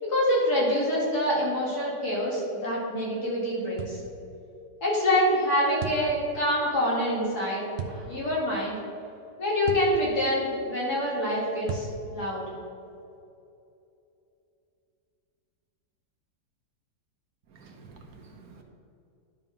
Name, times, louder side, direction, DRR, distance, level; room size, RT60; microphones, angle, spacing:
voice 1, 0.0-4.0 4.8-8.8 9.4-12.4, equal, 60° left, -6 dB, 2.8 m, -26 dB
sound 1, 3.8-4.0 5.8-6.1 7.8-8.0 9.7-9.9 11.7-12.0, right 7 dB, 80° right, 0.5 m, -34 dB
voice 2, 17.5-18.6, right 4 dB, 65° right, 2 dB, 1.2 m, -50 dB
10.5 x 3.7 x 5.8 m, 2.7 s
omnidirectional pair, 1.8 m